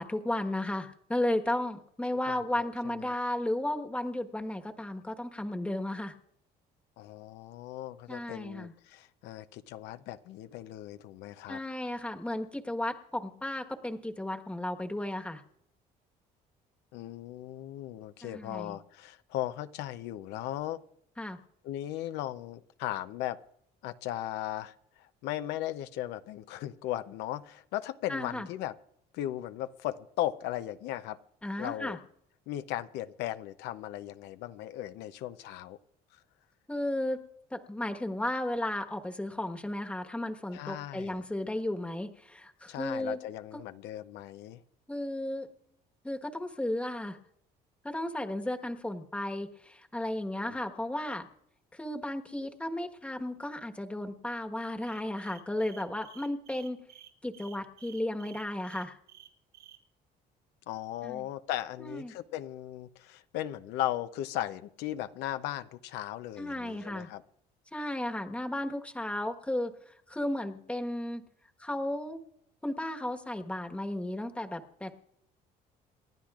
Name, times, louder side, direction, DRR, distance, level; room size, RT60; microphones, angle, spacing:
voice 1, 0.0-6.1 8.1-8.7 11.5-15.4 18.2-18.8 21.2-21.4 28.1-28.5 31.4-32.0 36.7-37.2 37.5-43.2 44.9-45.5 46.0-47.2 47.8-51.3 51.7-56.8 57.2-59.0 61.0-61.3 61.8-62.1 66.4-67.1 67.7-71.2 71.6-72.2 72.6-74.9, left 1 dB, 5° left, 4 dB, 1.3 m, -34 dB
voice 2, 2.3-3.1 7.0-11.6 16.9-20.8 21.6-23.4 23.8-28.7 29.1-31.2 31.6-32.0 32.5-35.8 40.5-41.2 42.7-44.6 50.5-50.6 60.7-67.2, left 13 dB, 90° left, 11 dB, 0.6 m, -37 dB
sound 1, 54.8-59.8, right 11 dB, 80° right, 1.6 m, -54 dB
29.0 x 11.5 x 2.4 m, 0.74 s
cardioid pair, 110°, 17 cm